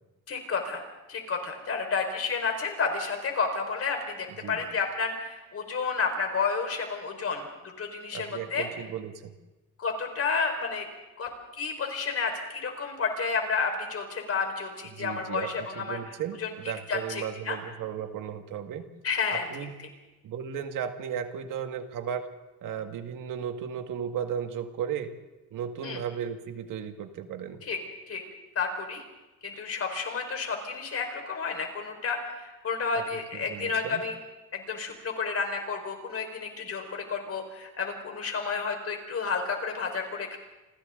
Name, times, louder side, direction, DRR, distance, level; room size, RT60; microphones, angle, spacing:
voice 1, 0.3-0.8 1.1-7.5 7.8-8.7 9.8-10.9 11.2-16.5 16.9-17.6 19.0-19.4 25.8-26.0 27.6-27.8 28.1-28.2 28.5-29.0 29.4-34.2 34.5-40.4, left 5 dB, 50° left, 4 dB, 5.1 m, -31 dB
voice 2, 8.1-9.3 14.9-15.5 15.8-18.9 19.3-19.7 20.2-22.3 22.6-25.1 25.5-27.6 32.9-33.0 33.5-34.0, right 8 dB, 85° right, 6 dB, 2.1 m, -35 dB
28.5 x 25.5 x 4.0 m, 1.1 s
cardioid pair, 125°, 31 cm